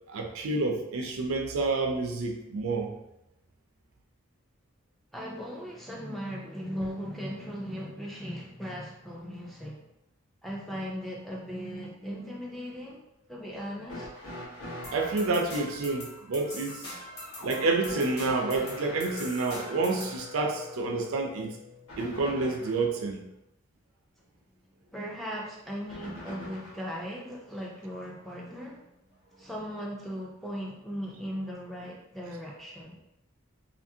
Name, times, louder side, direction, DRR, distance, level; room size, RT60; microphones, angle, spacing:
voice 1, 0.1-2.9 14.9-17.0 17.4-21.6 22.0-23.2, right 3 dB, 70° right, 3 dB, 0.4 m, -29 dB
voice 2, 5.1-9.8 10.4-13.0 13.3-14.1 24.9-28.9 29.3-33.0, equal, ahead, -4 dB, 0.4 m, -38 dB
sound 1, 13.9-15.3 17.8-22.9 25.9-26.9 28.2-28.3 29.3-29.4, left 2 dB, 80° left, 1.0 m, -43 dB
sound 2, 14.8-20.2, left 1 dB, 50° left, 0.9 m, -42 dB
2.7 x 2.5 x 2.6 m, 0.86 s
head